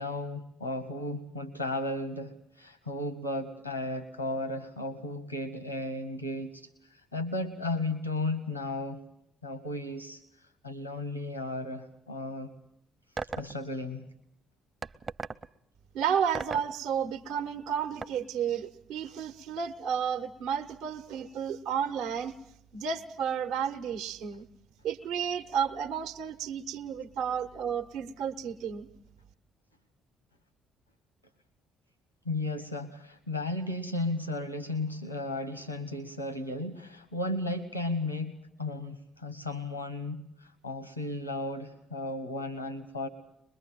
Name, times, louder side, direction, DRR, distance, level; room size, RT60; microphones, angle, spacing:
voice 1, 0.0-9.0 9.4-12.5 13.2-14.1 32.2-38.3 38.6-43.1, left 2 dB, 90° left, 13 dB, 1.2 m, -35 dB
sound 1, 13.2-13.5 14.8-15.5 16.3-16.7 18.0-18.1, right 4 dB, 35° right, 0.9 m, -35 dB
voice 2, 15.9-22.3 22.7-24.5 24.8-28.9, right 7 dB, 65° right, 7 dB, 1.1 m, -32 dB
23.5 x 22.0 x 7.6 m, 0.72 s
figure-of-eight pair, 45°, 0 cm